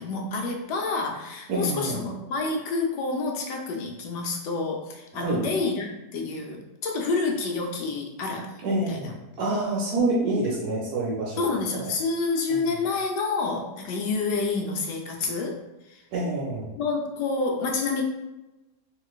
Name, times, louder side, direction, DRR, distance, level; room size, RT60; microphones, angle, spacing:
voice 1, 0.0-9.1 11.4-15.6 15.8-16.0 16.8-18.0, left 3 dB, 80° left, 2 dB, 1.2 m, -28 dB
voice 2, 1.5-2.0 5.1-5.4 8.6-11.9 12.5-12.6 16.1-16.7, right 2 dB, 70° right, -5 dB, 1.2 m, -27 dB
3.8 x 2.9 x 2.4 m, 1.0 s
omnidirectional pair, 1.8 m